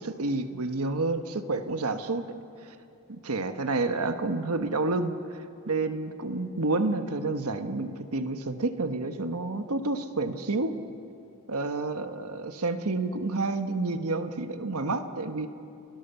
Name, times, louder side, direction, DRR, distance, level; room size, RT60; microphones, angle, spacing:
voice 1, 0.0-2.3 3.1-5.2 5.7-10.7 11.5-15.5, right 3 dB, 70° right, 8 dB, 1.3 m, -29 dB
29.5 x 17.5 x 7.1 m, 2.7 s
head